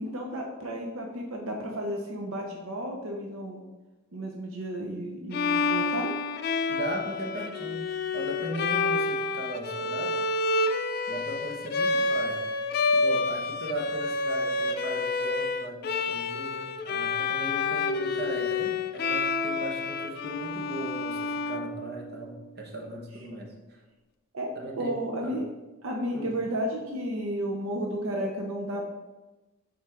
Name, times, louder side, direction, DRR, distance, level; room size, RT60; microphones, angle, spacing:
voice 1, 0.0-3.6 4.1-6.1 24.3-24.5 24.8-25.4 25.8-28.8, right 1 dB, 80° right, 1 dB, 0.8 m, -32 dB
Bowed string instrument, 5.3-22.2, left 3 dB, 50° left, 0.4 m, -29 dB
voice 2, 6.7-7.8 8.1-10.2 11.1-12.4 12.9-23.8 24.5-24.9 25.2-25.4 26.1-26.3, right 1 dB, 50° right, 0 dB, 1.1 m, -37 dB
7.5 x 4.3 x 3.7 m, 1.1 s
head